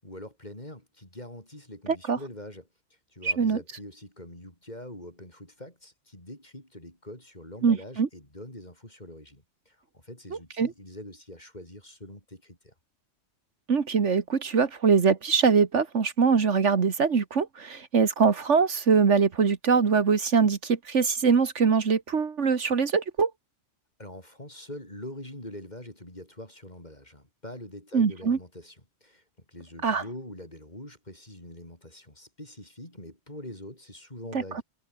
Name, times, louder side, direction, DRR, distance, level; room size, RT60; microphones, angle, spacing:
voice 1, 0.0-2.7 3.1-12.7 24.0-34.6, left 1 dB, 35° left, 6.8 m, -44 dB
voice 2, 3.2-3.6 7.6-8.1 10.6-10.7 13.7-23.3 27.9-28.4 29.8-30.0 34.3-34.6, right 5 dB, 70° right, 1.9 m, -23 dB
omnidirectional pair, 1.3 m